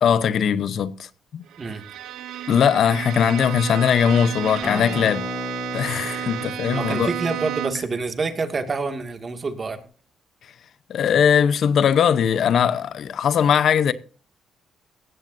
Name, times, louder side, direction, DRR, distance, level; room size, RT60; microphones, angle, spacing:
voice 1, 0.0-1.4 2.5-5.2 5.7-7.1 10.9-13.9, left 8 dB, 65° left, 0.9 m, -20 dB
Bowed string instrument, 1.5-8.0, right 13 dB, 80° right, 0.8 m, -32 dB
Acoustic guitar, 4.6-9.8, left 5 dB, 45° left, 4.0 m, -36 dB
voice 2, 6.7-9.8, right 4 dB, 35° right, 2.2 m, -27 dB
17.5 x 15.5 x 2.7 m
cardioid pair, 90°, 0 cm